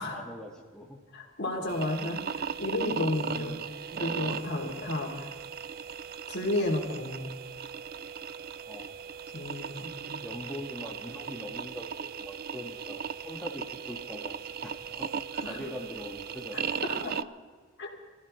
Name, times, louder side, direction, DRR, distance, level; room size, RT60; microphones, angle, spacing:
voice 1, 0.0-1.0 3.2-3.7 3.9-4.1 4.6-4.7 7.7-7.8 8.7-8.9 10.2-15.1 15.4-16.7 17.0-17.1, equal, 5° left, -2 dB, 1.8 m, -42 dB
voice 2, 1.1-3.6 3.9-5.3 6.3-7.3 9.3-10.2 15.4-15.6 16.8-17.1 17.8-17.9, left 1 dB, 55° left, 0 dB, 3.3 m, -32 dB
sound 1, 1.7-17.2, right 7 dB, 50° right, 0.5 m, -37 dB
25.5 x 15.5 x 3.3 m, 1.5 s
head